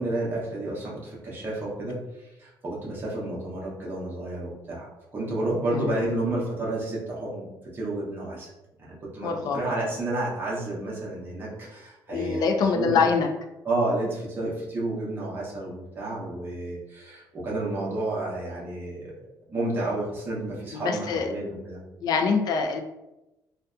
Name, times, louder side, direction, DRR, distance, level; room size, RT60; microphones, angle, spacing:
voice 1, 0.0-2.0 2.4-7.5 7.7-8.5 8.8-12.5 12.7-13.1 13.6-21.8, right 2 dB, 25° right, -6 dB, 0.8 m, -31 dB
voice 2, 9.2-9.6 12.1-13.3 20.7-21.3 22.0-22.8, left 5 dB, 55° left, 4 dB, 0.4 m, -24 dB
2.6 x 2.2 x 2.4 m, 0.96 s
cardioid pair, 135°, 8 cm